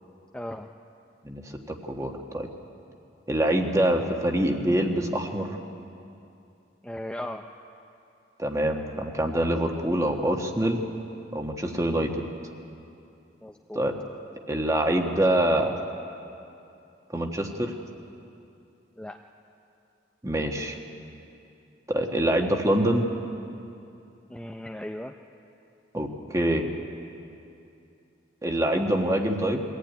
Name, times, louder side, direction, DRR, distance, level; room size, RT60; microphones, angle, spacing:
voice 1, 0.3-0.7 6.8-7.5 12.1-12.2 13.4-13.8 19.0-19.2 24.3-25.1, left 1 dB, 5° left, 3 dB, 0.5 m, -37 dB
voice 2, 1.2-2.5 3.3-5.6 8.4-10.8 11.3-12.3 13.7-13.9 14.5-15.7 17.1-17.7 20.2-20.8 21.9-23.1 25.9-26.7 28.4-29.6, right 1 dB, 15° right, 3 dB, 1.4 m, -25 dB
23.0 x 15.0 x 9.4 m, 2.7 s
head